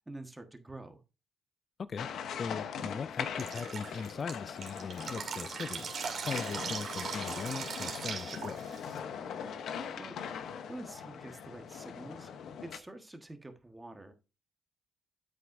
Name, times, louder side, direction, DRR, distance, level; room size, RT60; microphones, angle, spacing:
voice 1, 0.1-1.0 10.0-10.2 10.7-12.3 12.6-14.1, right 2 dB, 15° right, 1.3 m, -47 dB
sound 1, 2.0-12.8, left 7 dB, 70° left, 0.8 m, -41 dB
voice 2, 2.4-8.7, left 5 dB, 45° left, 0.3 m, -40 dB
Drip, 3.4-9.0, right 6 dB, 55° right, 2.1 m, -39 dB
8.4 x 7.7 x 2.6 m
cardioid pair, 90°, 0 cm